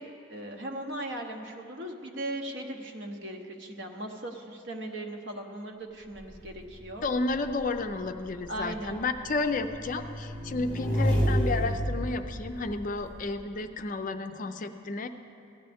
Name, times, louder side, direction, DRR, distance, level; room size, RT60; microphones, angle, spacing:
voice 1, 0.0-7.1 8.5-9.0, right 1 dB, 65° right, 3 dB, 0.9 m, -38 dB
Motorcycle / Engine, 6.1-13.2, equal, 5° left, 2.2 m, -31 dB
voice 2, 7.0-15.1, left 3 dB, 40° left, 8 dB, 0.4 m, -32 dB
16.0 x 11.0 x 3.5 m, 2.6 s
head